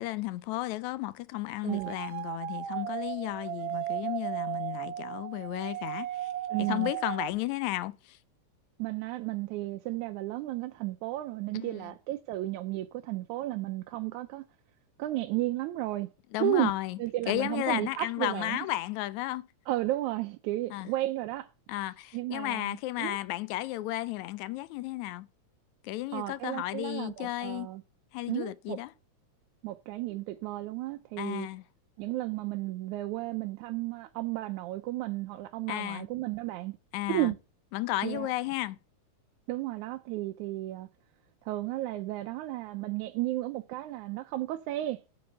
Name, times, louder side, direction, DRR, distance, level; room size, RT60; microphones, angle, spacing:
voice 1, 0.0-6.3 6.6-8.2 11.5-11.9 16.3-17.0 17.3-19.5 20.7-20.9 21.7-25.3 25.8-27.7 28.1-28.9 31.2-31.6 35.7-36.1 36.9-37.3 37.7-38.8, left 16 dB, 80° left, 1.9 m, -33 dB
voice 2, 1.6-2.0 6.5-6.9 8.8-14.4 15.0-16.1 16.4-16.7 17.0-18.6 19.7-21.5 22.1-23.2 26.1-27.8 28.3-28.8 29.6-31.5 32.0-36.8 37.1-37.4 38.0-38.3 39.5-40.9 41.5-45.0, right 16 dB, 90° right, 2.1 m, -33 dB
sound 1, 1.7-7.3, right 14 dB, 65° right, 1.7 m, -36 dB
8.7 x 4.9 x 6.8 m
omnidirectional pair, 3.3 m